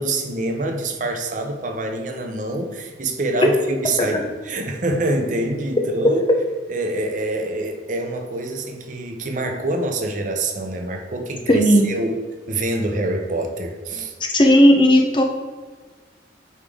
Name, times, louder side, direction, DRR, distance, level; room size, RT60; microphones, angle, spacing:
voice 1, 0.0-6.2 6.7-12.2 12.5-14.2, right 2 dB, 40° right, 4 dB, 0.6 m, -25 dB
voice 2, 11.5-11.9 14.2-15.2, equal, 25° left, 2 dB, 0.6 m, -15 dB
8.8 x 3.4 x 3.6 m, 1.4 s
head